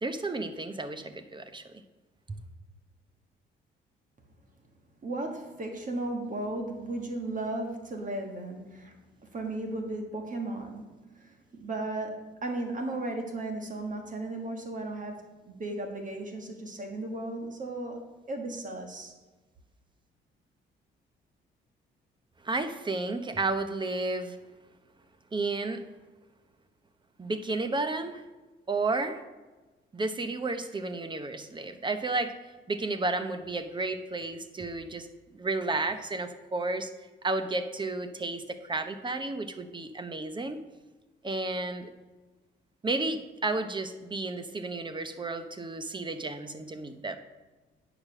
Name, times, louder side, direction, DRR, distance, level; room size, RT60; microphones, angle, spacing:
voice 1, 0.0-1.8 2.3-2.4 22.4-24.4 25.3-25.8 27.2-28.2 28.7-29.2 29.9-32.4 32.7-35.1 35.3-36.9 37.2-40.6 41.2-41.9 42.8-47.2, right 3 dB, 25° right, 9 dB, 0.9 m, -32 dB
voice 2, 5.0-19.1, right 2 dB, 40° right, 3 dB, 1.6 m, -36 dB
9.3 x 5.0 x 6.3 m, 1.2 s
cardioid pair, 90°, 20 cm